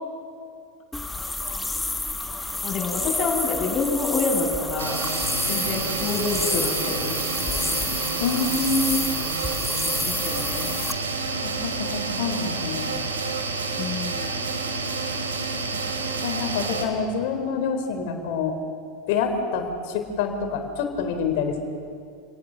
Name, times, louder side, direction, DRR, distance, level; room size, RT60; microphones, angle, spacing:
sound 1, 0.9-10.9, left 2 dB, 10° left, 1.5 m, -29 dB
voice 1, 2.6-5.0 5.5-7.2 7.5-7.7 10.0-10.7 13.8-14.4, left 3 dB, 35° left, -1 dB, 7.6 m, -28 dB
sound 2, 4.8-16.9, right 4 dB, 85° right, 2.9 m, -29 dB
voice 2, 8.2-9.1 11.4-13.0 15.7-15.8 16.2-18.5 19.1-21.6, left 5 dB, 60° left, 5 dB, 3.8 m, -27 dB
29.0 x 18.0 x 6.4 m, 2.3 s
hypercardioid pair, 85°, 0 cm